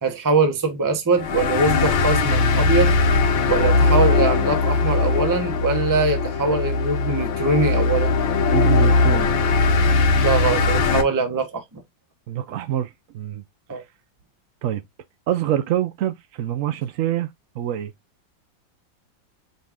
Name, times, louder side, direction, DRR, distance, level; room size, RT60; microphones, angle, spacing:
voice 1, 0.0-2.9 3.5-8.2 10.2-11.8 13.7-13.8, right 3 dB, 20° right, 0.5 m, -22 dB
sound 1, 1.2-11.0, left 3 dB, 85° left, 1.7 m, -19 dB
voice 2, 8.5-9.3 12.3-13.4 13.7-13.8 14.6-14.8 15.3-17.3 17.6-17.9, right 11 dB, 75° right, 0.7 m, -25 dB
5.3 x 2.6 x 3.5 m
omnidirectional pair, 2.0 m